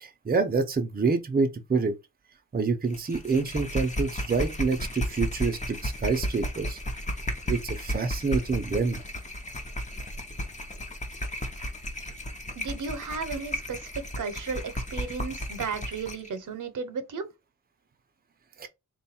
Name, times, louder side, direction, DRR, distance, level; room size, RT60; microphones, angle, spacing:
voice 1, 0.0-1.9 2.5-6.8 7.5-9.0 18.6-18.7, right 4 dB, 30° right, 0.6 m, -27 dB
sound 1, 2.9-16.3, equal, 25° left, 0.7 m, -34 dB
voice 2, 12.6-17.3, right 5 dB, 80° right, 0.8 m, -34 dB
3.8 x 2.3 x 4.2 m
wide cardioid pair, 140°, 31 cm